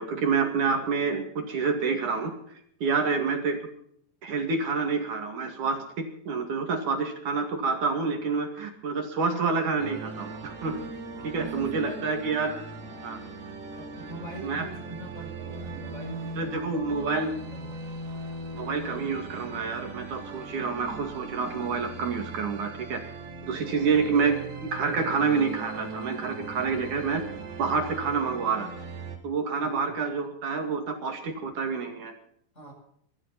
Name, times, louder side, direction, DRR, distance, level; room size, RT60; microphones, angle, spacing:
voice 1, 0.0-3.6 4.2-10.8 11.2-12.6 13.0-13.2 14.4-14.7 16.4-17.3 18.5-23.0 23.5-24.4 24.7-27.2 27.6-28.7 29.2-32.1, right 5 dB, 50° right, 3 dB, 3.3 m, -28 dB
sound 1, 9.8-29.2, right 3 dB, 80° right, 5.2 m, -39 dB
voice 2, 11.1-12.2 13.8-16.3 16.5-17.3 23.6-23.9 27.9-28.1 29.5-29.8 32.5-32.7, right 1 dB, 15° left, 1 dB, 7.5 m, -43 dB
23.0 x 13.5 x 4.2 m, 0.69 s
omnidirectional pair, 5.0 m